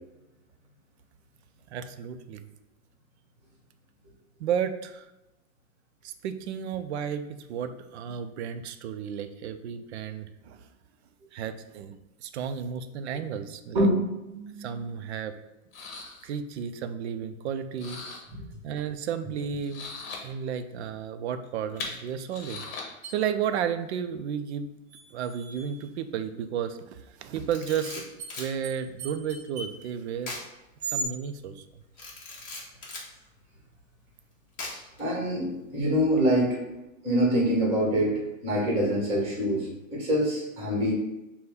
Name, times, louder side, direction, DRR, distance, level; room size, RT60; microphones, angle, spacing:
voice 1, 1.7-2.4 4.4-5.1 6.0-10.7 11.3-11.9 12.2-13.9 14.6-15.3 16.2-18.0 18.6-19.9 20.2-24.7 25.1-28.1 28.4-30.4 30.8-31.6, right 8 dB, 50° right, 10 dB, 0.5 m, -33 dB
voice 2, 13.7-14.8 18.3-18.4 35.0-36.6 37.0-40.9, equal, 15° right, -4 dB, 1.4 m, -25 dB
sound 1, 14.9-15.0 15.7-16.3 17.8-18.2 19.4-20.2 21.4-22.8, left 4 dB, 40° left, 1.1 m, -39 dB
sound 2, 23.0-23.1 24.9-25.9 27.7-27.8 28.2-28.3 28.6-28.7 29.0-29.8 30.8-31.0, right 4 dB, 35° right, 1.0 m, -37 dB
Camera, 27.4-28.5 30.2-30.5 30.8-31.0 32.0-33.1 34.6-35.0, left 2 dB, 20° left, 1.0 m, -39 dB
5.8 x 2.2 x 3.5 m, 0.95 s
hypercardioid pair, 145°, 42 cm